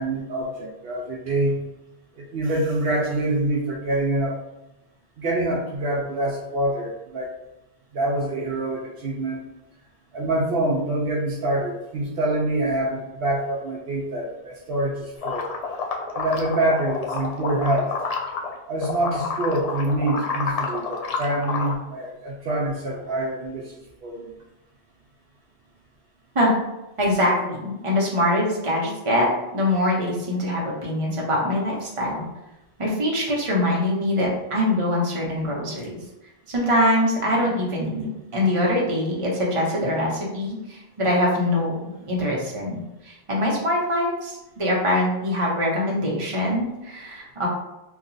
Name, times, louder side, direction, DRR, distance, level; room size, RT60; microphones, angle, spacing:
voice 1, 0.0-1.6 2.1-4.4 5.2-7.3 7.9-9.4 10.1-15.5 16.1-17.9 18.7-24.3, right 1 dB, 70° right, -3 dB, 0.8 m, -25 dB
sound 1, 15.2-18.5 18.8-21.7, left 5 dB, 50° left, 0.5 m, -29 dB
voice 2, 27.0-32.2 32.8-36.0 36.5-41.8 42.1-47.5, left 1 dB, 30° right, -4 dB, 0.9 m, -23 dB
2.9 x 2.4 x 3.9 m, 0.95 s
omnidirectional pair, 1.1 m